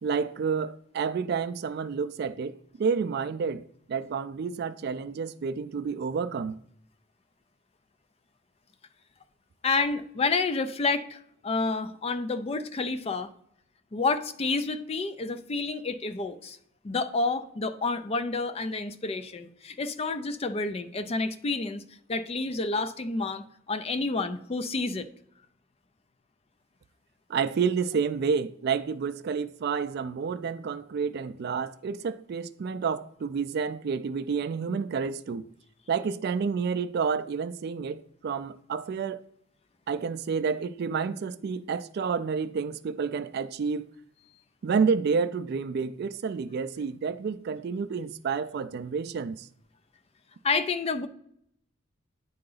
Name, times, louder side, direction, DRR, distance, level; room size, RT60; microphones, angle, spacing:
voice 1, 0.0-6.6 27.3-35.5 35.9-39.2 39.9-43.9 44.6-49.5, right 5 dB, 50° right, 0.3 m, -29 dB
voice 2, 9.6-13.3 13.9-16.6 16.8-21.8 22.1-25.1 50.4-51.1, left 3 dB, 30° left, 0.4 m, -29 dB
9.6 x 3.8 x 3.9 m
head